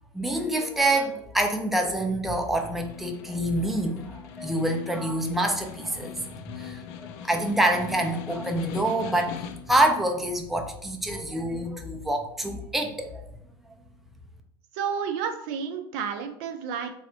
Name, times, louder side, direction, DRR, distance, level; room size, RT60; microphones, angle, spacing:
voice 1, 0.1-6.3 6.6-13.2, right 1 dB, ahead, 3 dB, 0.4 m, -26 dB
Snare drum, 2.4-9.9, left 8 dB, 60° left, 0.4 m, -41 dB
voice 2, 14.7-17.0, right 7 dB, 65° right, 6 dB, 0.5 m, -31 dB
3.2 x 2.7 x 2.7 m, 0.72 s
supercardioid pair, 105°, 12 cm